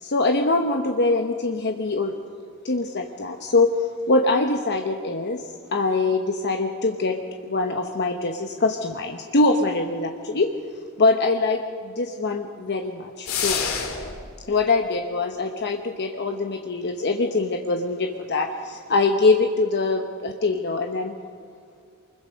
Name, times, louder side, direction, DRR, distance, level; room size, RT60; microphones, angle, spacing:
voice 1, 0.0-2.1 2.6-3.7 4.1-5.4 5.7-10.5 11.0-13.6 14.5-21.1, left 3 dB, 50° left, 5 dB, 1.0 m, -23 dB
sound 1, 13.3-14.3, left 6 dB, 70° left, 2.5 m, -27 dB
24.5 x 21.5 x 5.2 m, 2.4 s
head